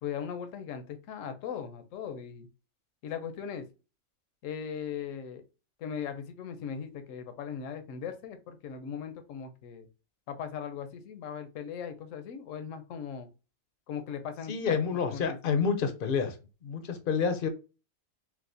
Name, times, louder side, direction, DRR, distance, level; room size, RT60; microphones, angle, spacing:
voice 1, 0.0-2.5 3.0-3.7 4.4-5.4 5.8-9.9 10.3-13.3 13.9-14.8 15.1-15.7, left 7 dB, 75° left, 8 dB, 1.0 m, -39 dB
voice 2, 14.5-16.4 16.6-17.5, left 6 dB, 55° left, 8 dB, 0.6 m, -28 dB
4.7 x 2.0 x 2.6 m, 0.31 s
omnidirectional pair, 1.4 m